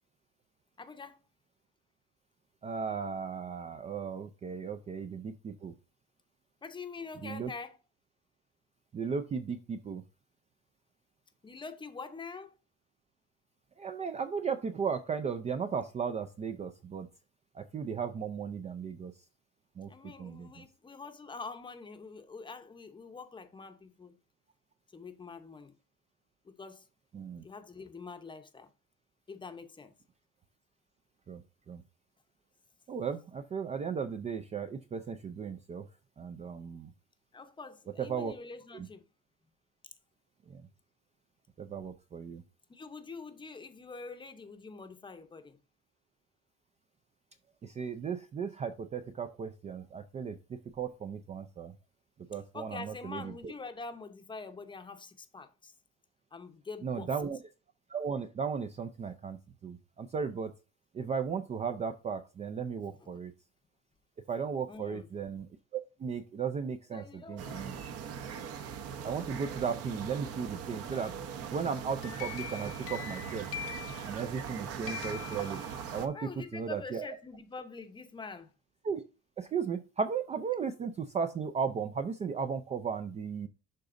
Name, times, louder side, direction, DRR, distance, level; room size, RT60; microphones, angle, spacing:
voice 1, 0.8-1.2 6.6-7.8 11.4-12.5 19.9-24.2 24.9-25.8 26.4-26.9 27.4-28.7 29.3-29.9 37.3-39.0 42.7-45.6 52.5-55.7 56.3-57.2 63.0-63.1 64.7-65.1 66.9-67.9 76.1-78.5, left 4 dB, 15° left, 0.7 m, -45 dB
voice 2, 2.6-5.7 7.2-7.5 8.9-10.0 13.8-17.1 17.5-19.1 19.8-19.9 20.2-20.5 27.1-27.4 31.3-31.4 31.7-31.8 32.9-35.8 36.2-36.9 38.0-38.3 38.7-38.9 40.5-40.6 41.6-42.4 47.6-51.7 52.3-53.3 56.8-57.4 57.9-59.4 59.6-60.5 60.9-63.3 64.3-65.5 65.7-67.7 69.0-71.1 71.5-73.4 74.0-75.6 75.9-77.0 78.8-79.0 79.4-83.5, right 6 dB, 25° right, 0.4 m, -36 dB
sound 1, 67.4-76.1, right 7 dB, 50° right, 0.9 m, -41 dB
sound 2, 71.8-74.5 74.9-76.2, left 9 dB, 50° left, 0.7 m, -43 dB
11.5 x 3.9 x 2.5 m
cardioid pair, 155°, 30 cm